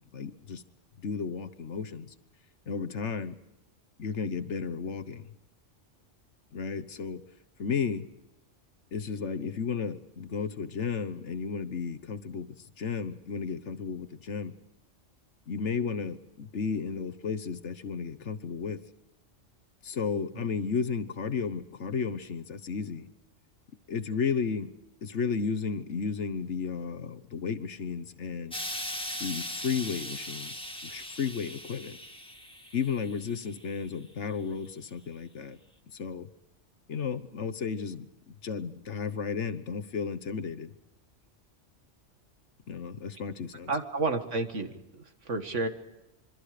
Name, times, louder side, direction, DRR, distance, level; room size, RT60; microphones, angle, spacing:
voice 1, 0.1-0.6 1.0-2.1 2.7-3.4 4.0-5.3 6.5-7.2 7.6-8.1 8.9-14.5 15.5-18.8 19.8-23.1 23.9-24.7 25.0-28.5 29.2-32.0 32.7-35.6 35.9-36.3 36.9-40.7 42.7-43.7, left 6 dB, 65° left, 11 dB, 1.4 m, -33 dB
Explosion, 28.5-33.8 34.7-34.8, equal, 5° left, 1.8 m, -39 dB
voice 2, 43.7-45.7, right 3 dB, 70° right, 7 dB, 2.1 m, -31 dB
26.5 x 24.0 x 5.0 m, 0.97 s
omnidirectional pair, 1.3 m